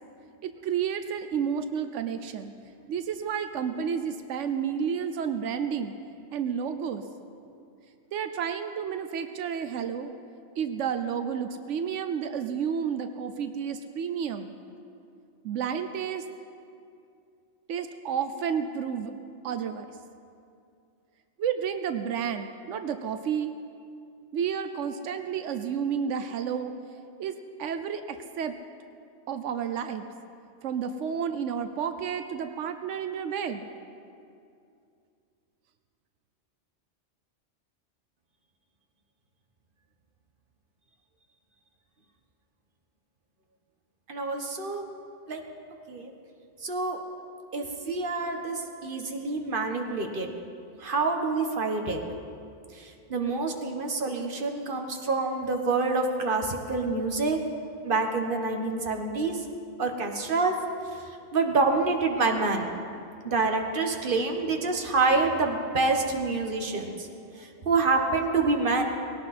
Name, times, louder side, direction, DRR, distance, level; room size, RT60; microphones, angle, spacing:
voice 1, 0.4-2.5 2.9-5.9 6.3-7.0 8.1-10.1 10.6-14.5 15.4-16.2 17.7-19.1 19.4-19.9 21.4-23.5 24.3-26.7 27.2-28.6 29.3-30.0 30.6-33.7, right 7 dB, 90° right, 8 dB, 1.0 m, -31 dB
voice 2, 44.1-44.8 45.3-45.4 45.9-46.1 46.6-47.0 47.5-50.3 50.8-52.0 52.8-57.4 57.8-59.4 59.8-60.5 61.3-62.7 63.2-67.1 67.4-68.8, right 3 dB, 50° right, 3 dB, 1.5 m, -27 dB
19.5 x 17.5 x 4.3 m, 2.5 s
omnidirectional pair, 1.2 m